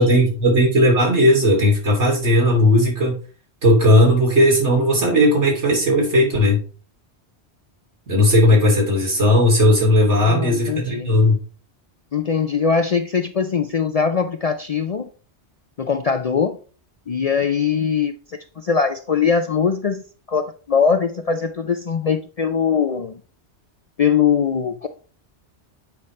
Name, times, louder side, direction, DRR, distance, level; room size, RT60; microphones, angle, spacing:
voice 1, 0.0-3.2 3.6-6.6 8.1-11.4, left 1 dB, 85° right, -2 dB, 3.2 m, -16 dB
voice 2, 10.2-11.1 12.1-15.1 15.8-16.6 17.1-20.0 20.3-23.2 24.0-24.9, left 6 dB, 50° left, 8 dB, 0.4 m, -21 dB
8.3 x 5.5 x 3.2 m, 0.38 s
omnidirectional pair, 1.1 m